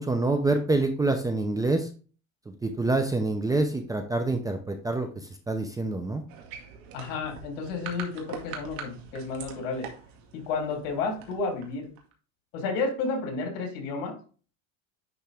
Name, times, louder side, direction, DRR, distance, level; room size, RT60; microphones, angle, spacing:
voice 1, 0.0-1.9 2.6-6.2, right 2 dB, 10° right, 6 dB, 0.6 m, -26 dB
sound 1, 6.3-12.1, right 6 dB, 65° right, 1.9 m, -43 dB
voice 2, 6.9-9.9 10.3-11.9 12.5-14.2, left 4 dB, 70° left, 1 dB, 3.2 m, -31 dB
10.5 x 3.6 x 3.5 m, 0.38 s
cardioid pair, 140°, 38 cm